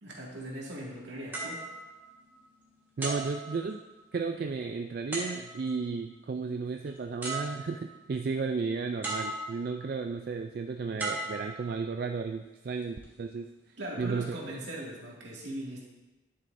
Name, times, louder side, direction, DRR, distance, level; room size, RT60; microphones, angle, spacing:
voice 1, 0.0-1.6 13.8-15.8, right 1 dB, 75° right, -3 dB, 2.1 m, -39 dB
sound 1, 1.3-2.5 3.0-4.2 5.1-5.8 6.9-7.0 7.2-8.0 9.0-9.8 11.0-12.1 12.8-13.1, right 2 dB, 10° right, 1.4 m, -37 dB
voice 2, 3.0-3.8 4.1-13.5 14.0-14.6, right 4 dB, 50° right, 5 dB, 0.3 m, -33 dB
10.5 x 7.5 x 2.6 m, 1.1 s
head